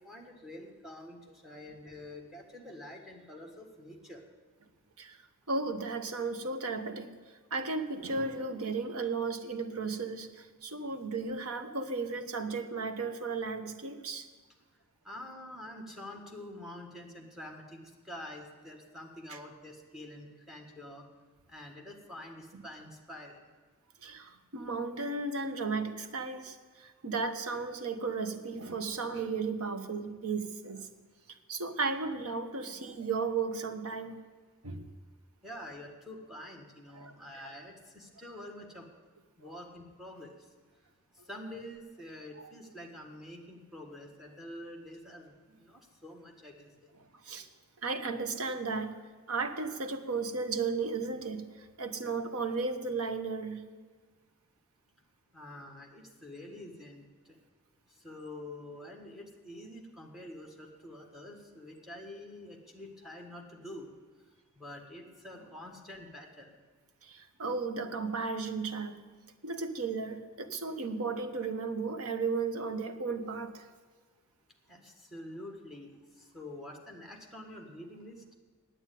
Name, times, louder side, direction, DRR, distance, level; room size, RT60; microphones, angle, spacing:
voice 1, 0.0-4.2 15.0-21.1 21.5-23.4 35.4-38.9 39.4-40.4 41.2-46.9 55.3-57.4 57.9-63.9 64.5-66.5 74.7-78.2, left 1 dB, ahead, 2 dB, 1.5 m, -47 dB
voice 2, 5.5-7.1 7.5-14.3 19.3-19.4 22.5-22.6 24.0-30.9 31.5-34.2 34.6-34.9 36.9-37.1 39.5-39.6 47.2-47.5 47.8-48.9 49.3-53.6 67.0-69.0 69.4-73.7, right 4 dB, 80° right, 8 dB, 1.0 m, -35 dB
9.2 x 8.9 x 9.2 m, 1.5 s
head